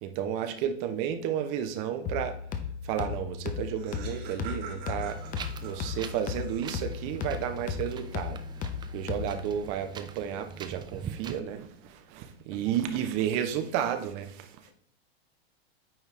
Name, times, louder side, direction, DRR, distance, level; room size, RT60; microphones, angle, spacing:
voice 1, 0.0-2.4 2.8-5.2 5.6-8.4 8.9-14.5, right 9 dB, 45° right, 8 dB, 1.1 m, -32 dB
sound 1, 2.1-9.6, left 7 dB, 25° left, 0.9 m, -36 dB
Laughter, 3.2-3.3 3.5-7.1, right 6 dB, 65° right, 2.6 m, -46 dB
Wind, 5.0-11.4, right 7 dB, 15° right, 0.4 m, -43 dB
voice 2, 12.6-13.1 14.6-14.7, left 3 dB, 75° left, 3 dB, 2.1 m, -50 dB
8.9 x 4.6 x 3.4 m, 0.63 s
hypercardioid pair, 125°, 31 cm